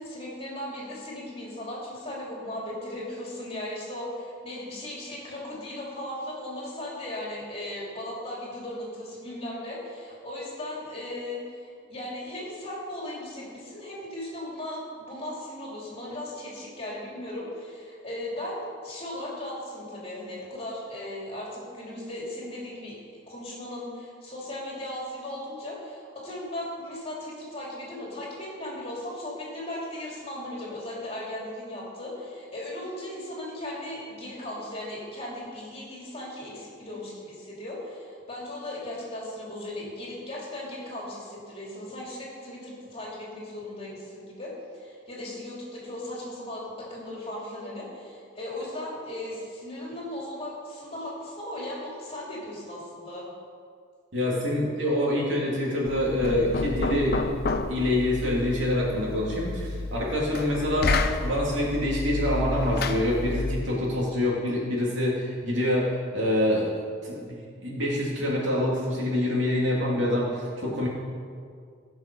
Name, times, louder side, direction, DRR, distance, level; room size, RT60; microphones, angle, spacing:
voice 1, 0.0-53.3, left 1 dB, 30° left, -4 dB, 2.9 m, -37 dB
voice 2, 54.1-57.2 57.7-66.7 67.0-70.9, left 1 dB, 65° right, -4 dB, 3.0 m, -26 dB
Knock, 55.9-63.8, left 3 dB, 50° left, 0.6 m, -30 dB
17.0 x 6.3 x 5.5 m, 2.2 s
head